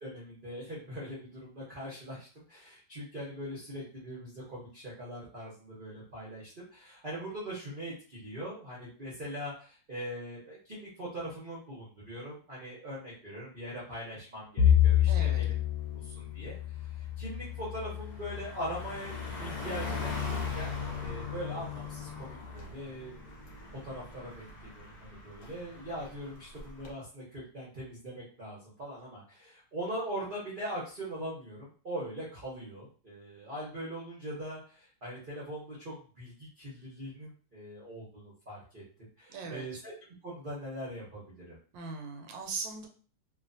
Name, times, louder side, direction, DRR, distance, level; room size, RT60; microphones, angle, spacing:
voice 1, 0.0-15.6 15.9-20.7 21.0-23.1 23.8-38.8 39.2-39.9 40.2-41.6, equal, 50° right, -6 dB, 0.6 m, -41 dB
Bowed string instrument, 14.6-19.0, left 10 dB, 75° left, 1.2 m, -28 dB
voice 2, 15.1-15.4 39.3-39.6 41.7-42.9, right 4 dB, 80° right, 3 dB, 1.3 m, -39 dB
Car passing by, 15.3-15.6 16.0-26.9, left 5 dB, 60° left, 0.9 m, -40 dB
3.0 x 2.3 x 2.5 m, 0.40 s
omnidirectional pair, 2.0 m